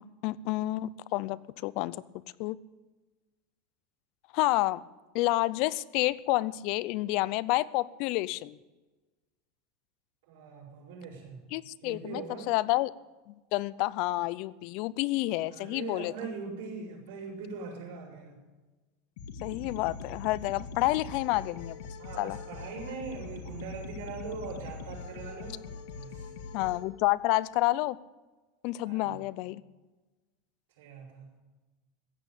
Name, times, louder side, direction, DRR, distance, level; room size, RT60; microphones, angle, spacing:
voice 1, 0.0-2.0 2.4-2.6 4.3-4.8 5.1-8.6 11.5-12.9 13.3-16.1 19.4-21.8 22.2-22.4 26.5-28.0 28.6-29.6, left 18 dB, 50° left, 19 dB, 0.5 m, -29 dB
voice 2, 10.3-11.4 11.8-12.5 15.5-18.4 21.9-25.6 25.9-26.3 28.8-29.2 30.8-31.3, right 5 dB, 75° right, -7 dB, 5.8 m, -41 dB
sound 1, 19.2-26.8, left 5 dB, 75° left, 1.8 m, -42 dB
15.0 x 8.7 x 8.4 m, 1.2 s
supercardioid pair, 155°, 0 cm